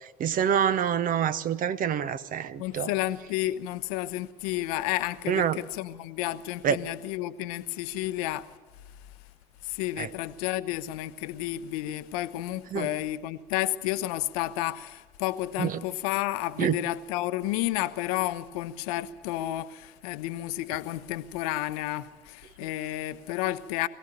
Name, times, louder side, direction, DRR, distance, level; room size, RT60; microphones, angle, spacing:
voice 1, 0.2-2.9 5.3-5.6 6.6-6.8 10.0-10.1 12.7-12.9 15.6-15.8 16.6-16.8, right 9 dB, 45° right, 0.9 m, -26 dB
voice 2, 2.6-8.5 9.6-23.9, left 15 dB, 65° left, 0.8 m, -31 dB
22.0 x 15.5 x 7.7 m
figure-of-eight pair, 60°, 20 cm